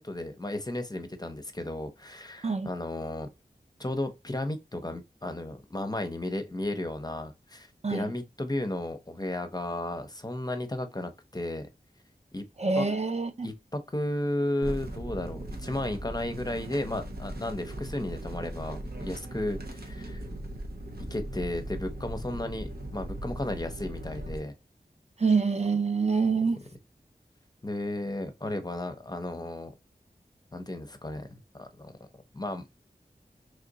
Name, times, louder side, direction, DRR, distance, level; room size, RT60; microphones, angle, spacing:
voice 1, 0.0-3.3 3.8-11.7 12.3-12.4 12.8-12.9 13.4-20.2 21.1-24.5 27.6-29.7 30.5-31.9 32.3-32.7, left 1 dB, 25° left, 0.7 m, -34 dB
voice 2, 12.6-13.5 25.2-26.6, right 4 dB, 45° right, 0.5 m, -26 dB
sound 1, 14.6-24.4, right 1 dB, 75° right, 0.8 m, -38 dB
3.3 x 2.5 x 3.8 m
wide cardioid pair, 60°, 16 cm